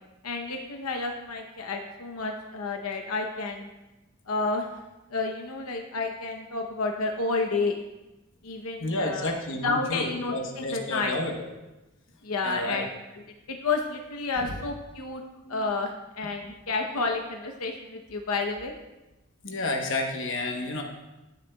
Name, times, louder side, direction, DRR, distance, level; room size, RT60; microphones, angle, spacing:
voice 1, 0.2-3.7 4.3-4.6 5.1-7.8 8.4-9.3 9.6-11.2 12.2-12.9 13.5-15.2 15.5-18.7, left 3 dB, 85° left, 3 dB, 0.8 m, -30 dB
voice 2, 8.8-11.5 12.4-12.9 14.4-14.6 15.4-15.6 19.4-20.8, left 2 dB, 55° left, 2 dB, 1.0 m, -30 dB
15.0 x 6.9 x 2.3 m, 1.0 s
head